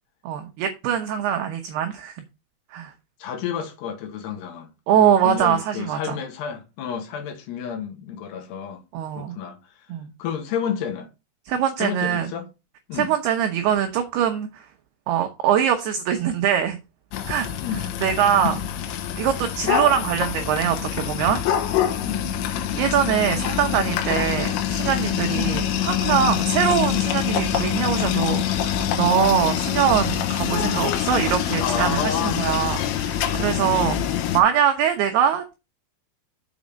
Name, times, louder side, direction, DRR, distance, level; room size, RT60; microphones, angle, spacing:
voice 1, 0.3-2.2 2.7-2.9 4.9-6.2 8.9-9.4 9.9-10.1 11.5-12.3 12.9-14.7 15.1-16.8 17.3-17.6 18.0-18.5 19.2-21.4 22.8-34.0 34.3-35.5, right 9 dB, 75° right, 2.4 m, -23 dB
voice 2, 3.2-8.8 9.1-9.9 10.2-11.1 11.8-12.5 12.9-13.1 17.6-17.9 18.4-18.6 21.9-22.4 25.3-25.6 31.5-32.5 33.6-33.8, left 8 dB, 70° left, 3.0 m, -30 dB
sound 1, 17.1-34.4, left 10 dB, 85° left, 3.7 m, -25 dB
7.3 x 5.7 x 5.1 m
omnidirectional pair, 5.7 m